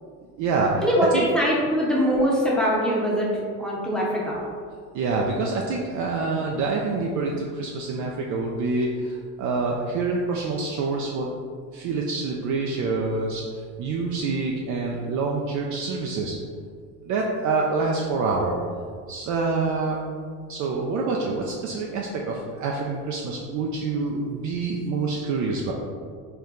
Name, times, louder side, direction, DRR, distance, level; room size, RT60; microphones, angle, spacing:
voice 1, 0.4-1.3 4.9-11.3 11.7-16.4 17.0-18.6 19.1-20.0 20.5-25.7, right 3 dB, 40° right, -1 dB, 0.4 m, -26 dB
voice 2, 1.3-3.3 3.6-4.4, equal, ahead, -6 dB, 0.9 m, -22 dB
4.5 x 2.2 x 3.7 m, 2.1 s
supercardioid pair, 95°, 47 cm